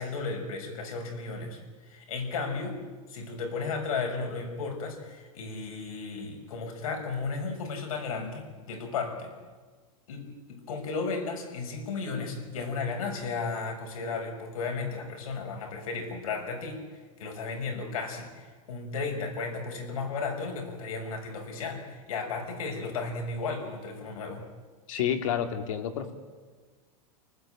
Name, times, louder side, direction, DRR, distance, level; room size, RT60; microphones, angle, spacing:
voice 1, 0.0-2.8 3.1-9.3 10.1-16.8 17.2-24.4, left 4 dB, 90° left, 3 dB, 5.8 m, -34 dB
voice 2, 24.9-26.1, left 9 dB, 70° left, 6 dB, 3.2 m, -29 dB
29.5 x 19.0 x 9.0 m, 1.4 s
supercardioid pair, 155°, 18 cm